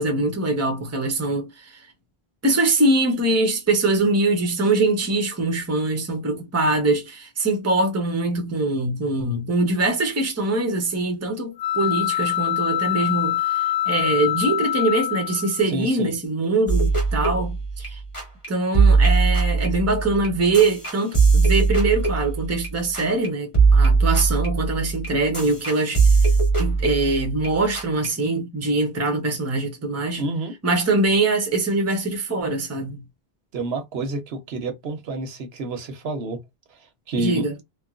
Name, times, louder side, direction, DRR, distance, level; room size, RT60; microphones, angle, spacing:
voice 1, 0.0-1.9 2.4-18.0 18.5-26.1 26.6-30.2 30.6-33.0 37.2-37.6, right 2 dB, 20° right, 0.6 m, -23 dB
sound 1, 11.6-15.7, left 13 dB, 55° left, 0.5 m, -24 dB
voice 2, 15.7-16.1 30.2-30.5 33.5-36.4 37.1-37.4, right 2 dB, 80° right, 1.0 m, -28 dB
sound 2, 16.7-18.5 18.7-23.3 23.5-27.5 27.7-28.1, right 4 dB, 30° left, 1.5 m, -20 dB
3.1 x 2.1 x 2.4 m
omnidirectional pair, 1.0 m